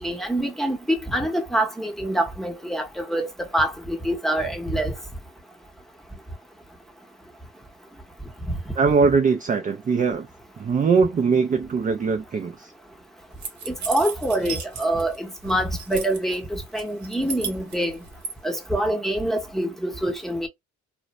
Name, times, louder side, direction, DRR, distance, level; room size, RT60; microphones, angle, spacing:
voice 1, 0.0-4.9 13.7-18.0 18.4-20.5, right 1 dB, ahead, 0.8 m, -25 dB
voice 2, 8.8-10.3 10.6-12.7, right 5 dB, 25° right, 0.4 m, -21 dB
sound 1, 13.4-15.2 15.4-16.4 16.8-18.3, right 6 dB, 65° right, 1.0 m, -34 dB
2.5 x 2.1 x 3.0 m
cardioid pair, 90°, 30 cm